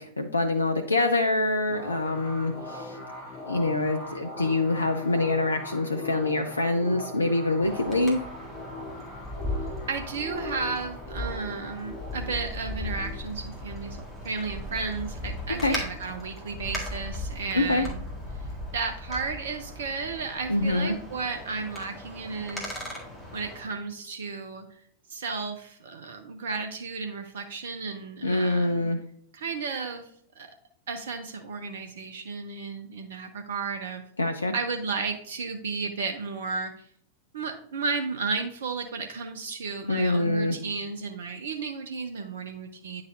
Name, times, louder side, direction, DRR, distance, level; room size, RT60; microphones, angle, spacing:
voice 1, 0.0-3.0 3.5-8.2 15.6-15.8 17.5-17.9 20.5-20.9 28.2-29.0 34.2-34.5 39.9-40.6, left 2 dB, 80° left, 6 dB, 0.4 m, -25 dB
sound 1, 1.7-14.9, left 2 dB, 40° left, 2.3 m, -40 dB
Wind, 7.6-23.6, left 1 dB, 5° left, 1.8 m, -38 dB
voice 2, 9.9-14.0 14.2-18.0 18.7-22.9 23.3-24.8 25.1-28.9 29.3-30.1 30.4-30.5 30.9-34.0 34.5-36.9 37.3-43.0, right 4 dB, 65° right, 7 dB, 0.5 m, -33 dB
9.3 x 4.0 x 2.6 m, 0.65 s
figure-of-eight pair, 90°, 0 cm